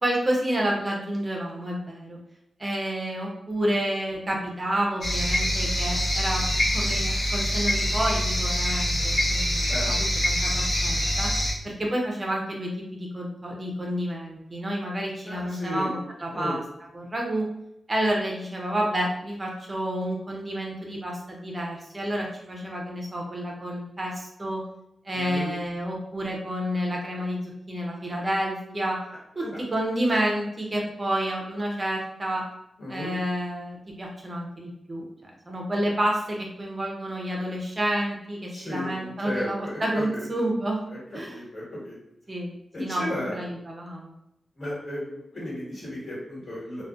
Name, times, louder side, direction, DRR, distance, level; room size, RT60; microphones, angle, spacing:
voice 1, 0.0-2.2 2.6-11.3 11.6-16.6 16.9-17.5 17.9-24.6 25.0-29.0 29.4-32.4 32.9-35.0 35.5-41.4 42.3-42.5 42.8-44.1, right 1 dB, 30° right, -1 dB, 0.5 m, -29 dB
sound 1, 5.0-11.5, equal, 85° left, 0.7 m, -25 dB
voice 2, 15.3-15.9 16.3-16.6 25.1-25.5 29.4-29.6 32.8-33.1 38.5-40.3 40.9-41.0 41.2-42.0 42.7-43.4 44.6-46.8, left 1 dB, 45° left, -8 dB, 1.4 m, -34 dB
2.4 x 2.1 x 2.4 m, 0.81 s
wide cardioid pair, 100°, 0 cm